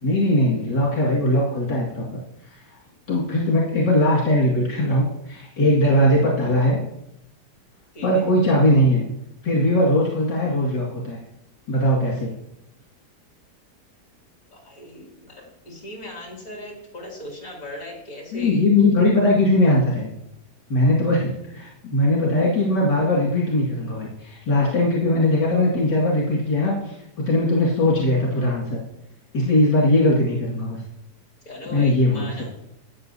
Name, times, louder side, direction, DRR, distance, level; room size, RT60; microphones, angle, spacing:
voice 1, 0.0-2.0 3.1-6.8 8.0-9.1 9.4-11.2 11.7-12.3 18.3-20.1 20.7-27.0 27.3-28.8 29.3-30.8 31.7-32.3, left 1 dB, 80° left, -5 dB, 2.7 m, -20 dB
voice 2, 14.5-18.6 31.4-32.5, left 1 dB, 55° left, -1 dB, 3.2 m, -38 dB
13.0 x 8.7 x 2.7 m, 0.83 s
omnidirectional pair, 1.8 m